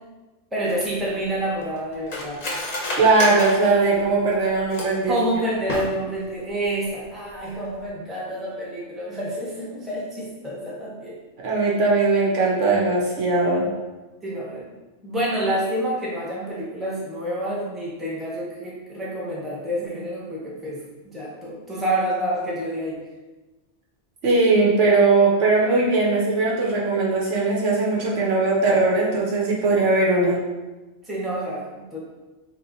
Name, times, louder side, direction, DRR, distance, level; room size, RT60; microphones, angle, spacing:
voice 1, 0.5-2.4 5.1-11.1 14.2-14.7 15.0-20.8 21.0-23.0 24.5-24.6 31.0-32.0, right 1 dB, ahead, -6 dB, 0.8 m, -28 dB
Cutlery silverware, 0.6-5.1 5.6-6.3 6.6-6.7 7.0-7.4 7.7-7.9, left 1 dB, 40° left, 0.7 m, -31 dB
voice 2, 3.0-5.2 11.4-13.7 24.2-30.4, right 3 dB, 85° right, -4 dB, 1.2 m, -19 dB
3.1 x 2.9 x 3.9 m, 1.2 s
omnidirectional pair, 1.2 m